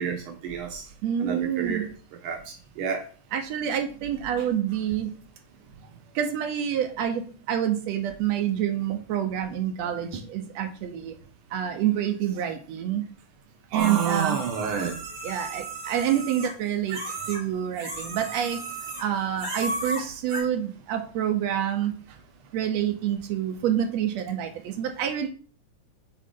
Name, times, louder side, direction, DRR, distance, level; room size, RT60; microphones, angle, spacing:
voice 1, 0.0-0.8 1.2-1.9 2.2-3.0 13.7-14.9, right 6 dB, 90° right, 3 dB, 1.2 m, -29 dB
voice 2, 1.0-1.9 3.3-5.1 6.2-11.1 11.5-13.0 13.7-14.4 15.2-18.6 19.0-21.9 22.5-25.3, right 10 dB, 70° right, 6 dB, 1.8 m, -27 dB
sound 1, 13.8-17.4 17.7-19.1 19.4-20.4, right 2 dB, 45° right, 4.0 m, -35 dB
7.5 x 3.8 x 3.7 m, 0.42 s
omnidirectional pair, 3.5 m